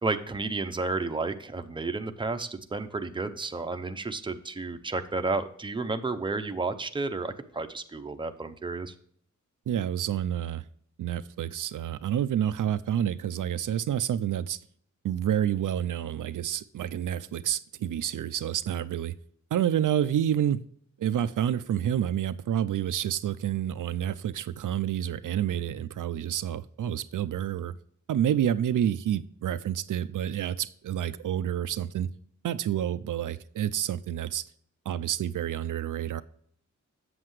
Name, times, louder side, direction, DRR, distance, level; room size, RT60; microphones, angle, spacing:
voice 1, 0.0-8.9, right 3 dB, 15° right, 0.6 m, -32 dB
voice 2, 9.7-10.6 11.0-14.6 15.0-19.1 19.5-20.6 21.0-27.7 28.1-32.1 32.4-34.4 34.9-36.2, right 10 dB, 80° right, 0.5 m, -29 dB
7.9 x 7.7 x 3.1 m
wide cardioid pair, 110°, 31 cm